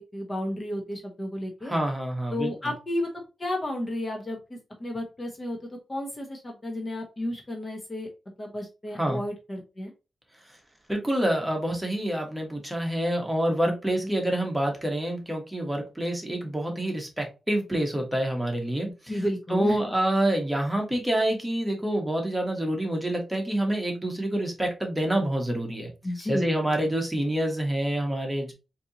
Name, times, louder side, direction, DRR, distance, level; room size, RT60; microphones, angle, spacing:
voice 1, 0.0-1.7 2.3-3.1 3.4-5.6 5.9-8.1 8.4-9.9 14.0-14.1 19.1-19.9 26.0-26.5 26.7-26.9, left 1 dB, 30° left, 2 dB, 0.9 m, -32 dB
voice 2, 1.6-2.5 9.0-9.2 10.9-18.9 19.5-25.9 26.3-28.5, right 1 dB, 10° right, 1 dB, 1.1 m, -27 dB
4.3 x 2.7 x 2.8 m, 0.29 s
wide cardioid pair, 105°, 0 cm